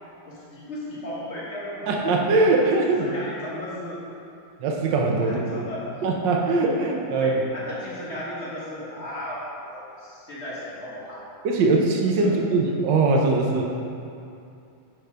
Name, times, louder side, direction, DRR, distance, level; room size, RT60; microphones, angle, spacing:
voice 1, 0.2-1.9 3.0-4.0 5.2-5.9 7.1-11.3 12.2-12.3, left 1 dB, 40° left, -8 dB, 1.3 m, -35 dB
voice 2, 1.9-3.1 4.6-5.6 6.0-7.5 11.4-13.7, right 3 dB, 65° right, 0 dB, 1.3 m, -21 dB
5.7 x 3.5 x 5.6 m, 2.6 s
omnidirectional pair, 2.4 m